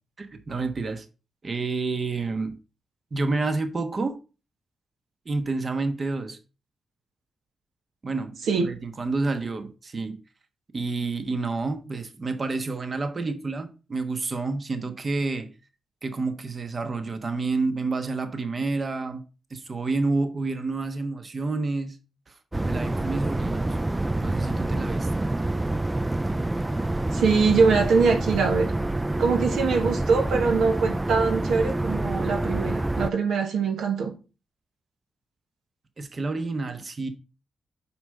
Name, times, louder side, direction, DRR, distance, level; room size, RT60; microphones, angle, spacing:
voice 1, 0.2-1.1 1.4-2.6 3.1-4.2 5.2-6.4 8.0-10.2 10.7-15.5 16.0-19.2 19.5-22.0 22.3-23.8 24.2-25.3 36.0-37.1, right 3 dB, 45° right, 1.2 m, -29 dB
sound 1, 22.5-33.1, right 2 dB, 20° right, 0.3 m, -27 dB
voice 2, 27.1-28.7 29.2-34.1, right 5 dB, 80° right, 1.1 m, -23 dB
5.8 x 5.0 x 5.4 m
supercardioid pair, 50°, 0 cm